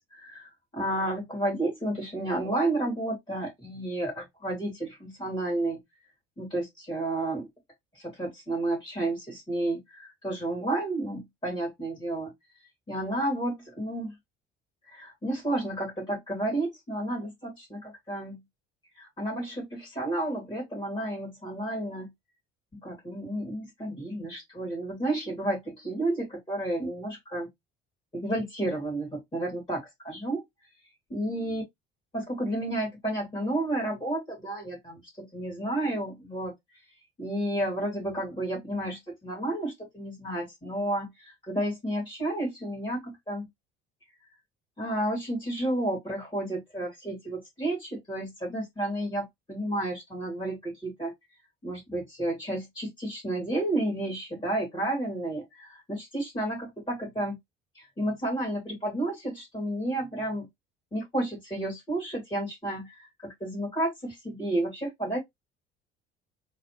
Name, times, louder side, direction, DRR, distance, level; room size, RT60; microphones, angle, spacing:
voice 1, 0.0-5.8 6.4-7.4 7.9-12.3 12.9-14.1 14.9-18.4 19.0-22.1 22.8-27.5 28.1-30.4 31.1-31.6 32.1-36.5 37.2-43.5 44.8-51.1 51.6-57.4 57.7-60.5 60.9-65.2, right 1 dB, 15° left, 2.6 m, -31 dB
4.0 x 2.3 x 3.1 m
figure-of-eight pair, 55°, 31 cm